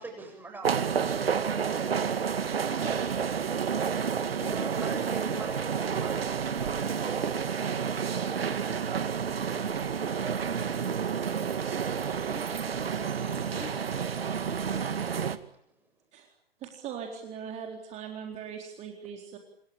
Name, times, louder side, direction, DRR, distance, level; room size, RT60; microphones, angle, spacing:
voice 1, 0.0-2.6 4.3-8.1 15.6-15.9, right 2 dB, 5° right, 4 dB, 7.5 m, -47 dB
sound 1, 0.6-15.4, right 7 dB, 70° right, 2.3 m, -30 dB
voice 2, 2.7-3.2 3.6-5.0 9.6-11.2 11.6-13.0 13.5-14.9, left 4 dB, 10° left, 2 dB, 3.6 m, -48 dB
voice 3, 16.6-19.4, right 7 dB, 20° right, 3 dB, 4.1 m, -40 dB
28.0 x 24.0 x 8.9 m, 0.66 s
figure-of-eight pair, 130°, 31 cm